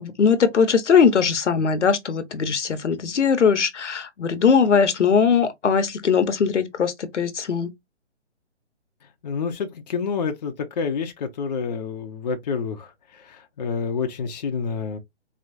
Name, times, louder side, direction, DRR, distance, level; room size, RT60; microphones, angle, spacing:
voice 1, 0.0-7.7, left 6 dB, 80° left, 1.0 m, -20 dB
voice 2, 9.2-12.9 13.1-15.0, left 5 dB, 35° left, 0.7 m, -28 dB
4.4 x 2.9 x 2.4 m
hypercardioid pair, 150°, 35 cm